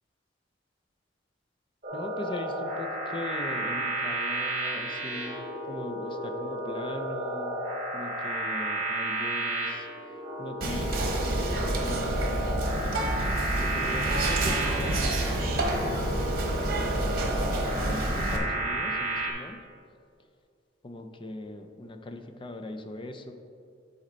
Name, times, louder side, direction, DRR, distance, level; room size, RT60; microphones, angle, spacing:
sound 1, 1.8-19.3, right 1 dB, 35° right, 1.3 m, -32 dB
voice 1, 1.9-7.6 7.9-9.9 10.4-16.0 16.5-19.6 20.8-23.3, left 2 dB, 25° left, 6 dB, 0.5 m, -40 dB
Whispering, 10.6-18.4, right 1 dB, 55° right, 1.0 m, -28 dB
10.5 x 4.3 x 3.9 m, 2.4 s
head